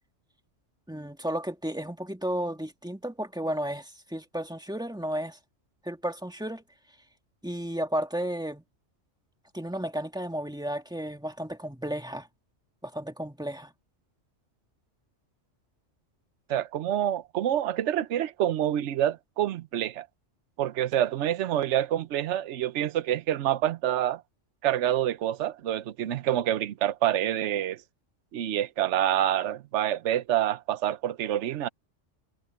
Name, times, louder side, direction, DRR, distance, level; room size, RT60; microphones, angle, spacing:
voice 1, 0.9-5.4 5.8-6.6 7.4-8.6 9.5-12.3 12.8-13.7, right 1 dB, 5° right, 1.8 m, -33 dB
voice 2, 16.5-20.1 20.6-24.2 24.6-27.8 28.3-31.7, right 11 dB, 70° right, 1.0 m, -27 dB
omnidirectional pair, 1.3 m